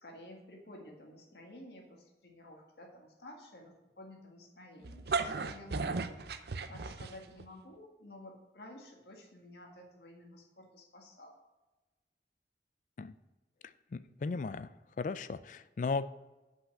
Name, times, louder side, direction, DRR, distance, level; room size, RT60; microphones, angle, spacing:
voice 1, 0.0-6.1 6.7-11.4, left 1 dB, 65° left, 1 dB, 1.7 m, -52 dB
sound 1, 4.8-7.4, right 4 dB, 65° right, 0.5 m, -35 dB
voice 2, 13.9-14.7 15.0-16.1, left 4 dB, 45° left, 14 dB, 0.3 m, -36 dB
5.8 x 5.5 x 6.4 m, 1.1 s
head